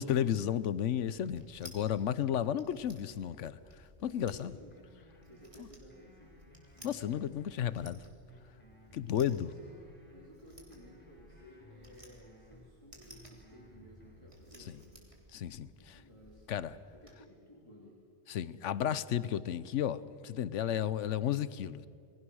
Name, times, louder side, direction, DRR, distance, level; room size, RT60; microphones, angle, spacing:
voice 1, 0.0-3.6 4.0-4.5 6.8-8.0 8.9-9.5 15.3-16.0 16.5-16.7 18.3-21.9, left 10 dB, 80° left, 16 dB, 1.1 m, -33 dB
sound 1, 0.9-17.1, equal, 25° right, 3.1 m, -58 dB
voice 2, 4.0-4.8 5.2-6.4 6.7-7.3 8.5-9.0 9.4-9.9 10.1-15.1 15.8-16.5 16.9-18.0, equal, 25° left, -5 dB, 3.2 m, -56 dB
sound 2, 4.7-5.5 5.9-7.9 8.3-10.3 10.7-12.7 13.1-14.3, equal, 10° left, 4.5 m, -59 dB
28.0 x 21.0 x 6.3 m, 2.5 s
omnidirectional pair, 1.2 m